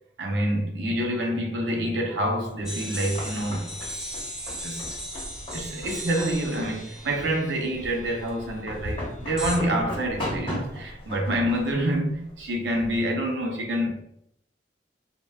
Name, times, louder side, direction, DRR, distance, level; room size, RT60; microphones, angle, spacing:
voice 1, 0.2-4.1 4.6-4.8 5.5-14.0, right 1 dB, 85° right, 0.6 m, -27 dB
sound 1, 2.6-13.0, left 1 dB, 35° left, 1.0 m, -38 dB
sound 2, 2.7-8.4 9.4-9.6, equal, 5° right, 0.5 m, -37 dB
3.2 x 2.1 x 2.3 m
head